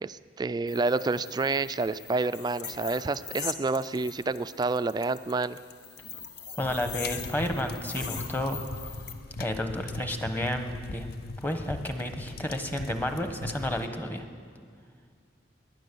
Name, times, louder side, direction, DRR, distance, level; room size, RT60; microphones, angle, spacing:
voice 1, 0.0-5.6, right 3 dB, 25° right, 13 dB, 0.3 m, -29 dB
sound 1, 0.7-9.1, left 6 dB, 70° left, 1.0 m, -42 dB
sound 2, 6.6-13.9, left 3 dB, 55° left, 0.5 m, -40 dB
voice 2, 6.6-8.6 9.4-11.1 11.4-14.3, left 1 dB, 10° left, 6 dB, 1.1 m, -31 dB
20.0 x 10.0 x 6.8 m, 2.1 s
head